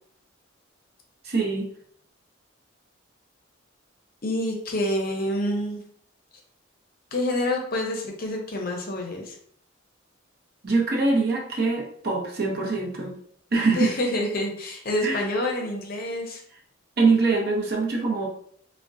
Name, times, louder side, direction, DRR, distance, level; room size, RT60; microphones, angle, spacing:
voice 1, 1.2-1.7 10.6-13.1 13.5-13.9 15.0-15.2 17.0-18.3, right 3 dB, 50° right, 0 dB, 0.7 m, -23 dB
voice 2, 4.2-5.8 7.1-9.4 13.8-16.4, left 1 dB, 45° left, 1 dB, 0.6 m, -27 dB
3.6 x 2.1 x 2.5 m, 0.63 s
head